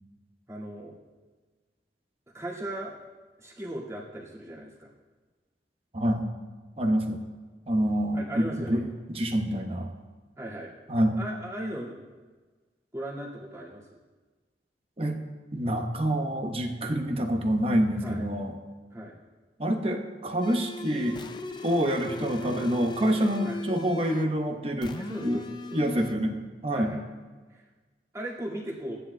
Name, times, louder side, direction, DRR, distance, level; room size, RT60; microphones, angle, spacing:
voice 1, 0.5-1.0 2.3-3.0 3.4-4.9 8.1-8.8 10.4-10.7 11.2-12.0 12.9-13.9 18.0-18.2 18.9-19.2 23.4-23.6 25.0-25.8 26.7-27.0 27.5-27.6 28.1-29.0, right 1 dB, 15° right, -6 dB, 1.9 m, -37 dB
voice 2, 5.9-6.3 6.8-7.2 7.7-8.8 9.1-9.9 10.9-11.2 15.0-15.2 15.5-18.5 19.6-21.2 21.6-25.4 25.7-26.9, equal, 35° right, 3 dB, 0.9 m, -27 dB
sound 1, 20.4-24.4 24.8-26.1, left 2 dB, 25° left, 0.4 m, -38 dB
16.0 x 10.0 x 2.2 m, 1.3 s
head